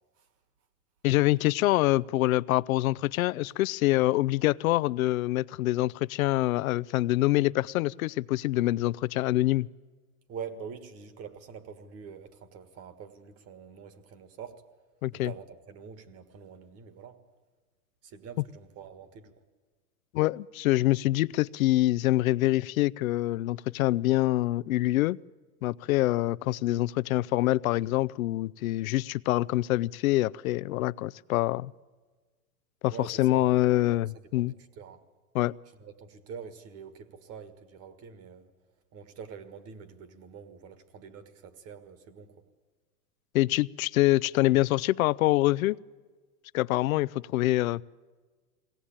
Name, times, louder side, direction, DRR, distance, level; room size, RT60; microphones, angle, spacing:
voice 1, 1.0-9.7 15.0-15.3 20.1-25.2 25.6-31.7 32.8-34.5 35.3-35.5 43.3-45.8 46.5-47.8, left 17 dB, 65° left, 18 dB, 0.6 m, -25 dB
voice 2, 10.3-14.6 15.1-17.2 18.0-19.3 32.9-33.5 34.4-35.0 35.8-38.5 38.9-42.4, right 6 dB, 30° right, 10 dB, 1.8 m, -45 dB
22.0 x 17.5 x 8.7 m, 1.4 s
hypercardioid pair, 135°, 46 cm